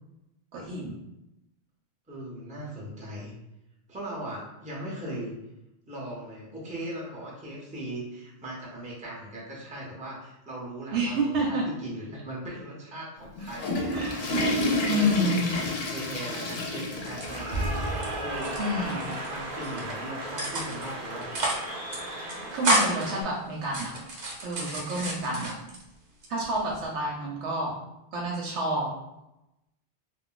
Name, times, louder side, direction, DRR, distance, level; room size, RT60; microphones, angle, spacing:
voice 1, 0.5-0.9 10.9-11.7 13.9-14.2 14.9-15.5 18.6-19.0 22.5-23.9 24.4-25.6 26.3-27.7 28.1-28.9, right 1 dB, 90° right, -3 dB, 0.9 m, -28 dB
voice 2, 2.1-3.3 3.9-5.4 5.9-17.6 18.1-21.3, right 1 dB, 10° right, -5 dB, 0.6 m, -39 dB
Water / Toilet flush, 13.2-18.2 18.5-18.6 19.4-19.5 20.7-20.8, left 1 dB, 60° left, 0.6 m, -30 dB
Cheering / Applause, 16.9-23.2, right 1 dB, 50° right, 0.7 m, -35 dB
sound 1, 17.0-18.1 18.3-19.3 19.6-19.9 20.4-20.9 21.2-21.7 21.9-22.0 22.3-23.1 23.6-25.8 26.2-26.9, right 1 dB, 70° right, 0.9 m, -30 dB
2.4 x 2.1 x 3.8 m, 0.90 s
omnidirectional pair, 1.1 m